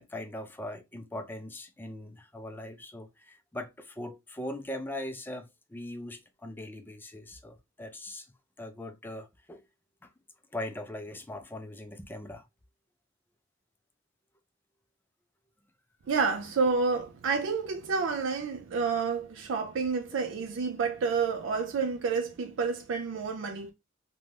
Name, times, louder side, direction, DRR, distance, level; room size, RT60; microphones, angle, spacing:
voice 1, 0.0-8.3 8.6-9.6 10.0-10.1 10.5-12.5, left 1 dB, 10° left, 0.4 m, -40 dB
voice 2, 16.1-23.7, right 5 dB, 65° right, 0.4 m, -29 dB
2.5 x 2.2 x 3.2 m
head